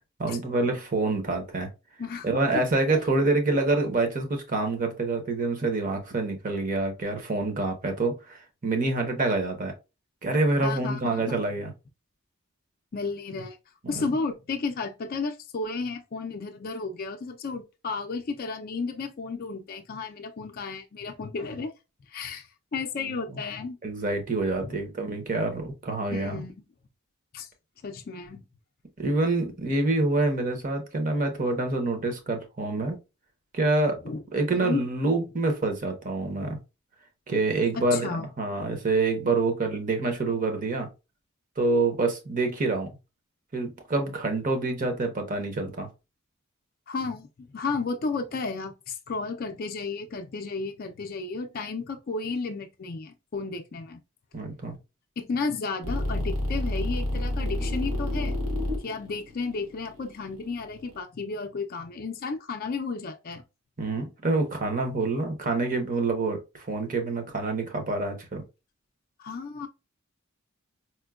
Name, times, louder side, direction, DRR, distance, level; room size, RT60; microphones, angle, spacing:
voice 1, 0.2-1.7 2.2-9.7 10.2-11.7 13.8-14.1 23.0-23.4 23.8-26.4 29.0-33.0 33.5-34.0 34.3-36.6 37.3-40.9 41.6-42.9 43.5-45.9 54.3-54.8 63.8-68.4, right 2 dB, 40° right, 0.8 m, -27 dB
voice 2, 10.6-11.4 12.9-13.6 13.9-21.7 22.1-23.8 24.6-24.8 26.1-26.5 27.3-27.5 27.8-28.4 34.0-34.2 34.5-34.8 37.8-38.6 46.9-54.0 55.2-58.4 58.8-63.4 69.2-69.7, left 4 dB, 45° left, 0.4 m, -33 dB
sound 1, 55.8-61.0, left 1 dB, 85° right, 1.0 m, -29 dB
4.3 x 2.1 x 2.3 m
head